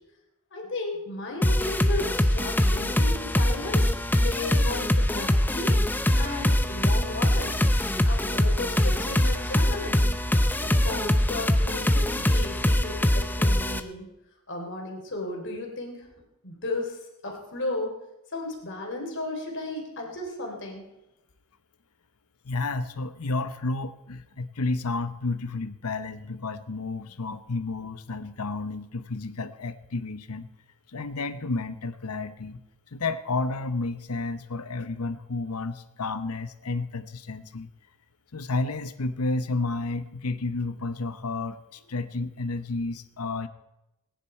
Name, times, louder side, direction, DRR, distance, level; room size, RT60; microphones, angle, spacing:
voice 1, 0.5-5.8 6.2-7.6 8.0-10.1 10.6-14.1 14.5-16.1 16.4-17.9 18.3-20.8, left 2 dB, 55° left, 1 dB, 3.3 m, -35 dB
sound 1, 1.4-13.8, left 1 dB, 10° left, 0.6 m, -23 dB
voice 2, 22.4-30.5 30.9-32.6 32.9-37.7 38.3-43.5, left 3 dB, 85° left, 13 dB, 0.9 m, -31 dB
19.5 x 10.5 x 4.4 m, 0.92 s
head